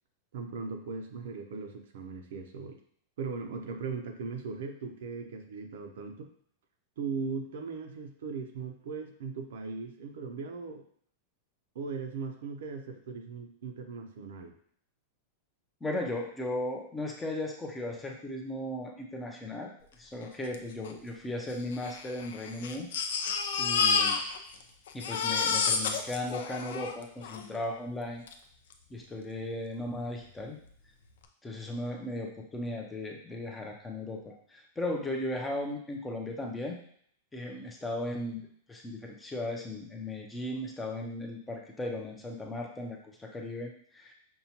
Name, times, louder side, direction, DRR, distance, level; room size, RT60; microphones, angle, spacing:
voice 1, 0.3-2.8 3.2-6.3 7.0-10.8 11.7-14.6, right 4 dB, 75° right, 5 dB, 0.6 m, -38 dB
voice 2, 15.8-22.9 23.6-24.2 24.9-28.2 28.9-30.6 31.4-36.8 37.3-44.1, left 1 dB, 10° left, 0 dB, 0.5 m, -36 dB
Crying sobbing, 20.5-20.6 20.8-20.9 21.7-24.6 24.9-27.4 28.3-28.4 28.7-28.8, left 5 dB, 80° left, 0.4 m, -30 dB
5.4 x 2.2 x 2.8 m, 0.62 s
supercardioid pair, 160°, 0 cm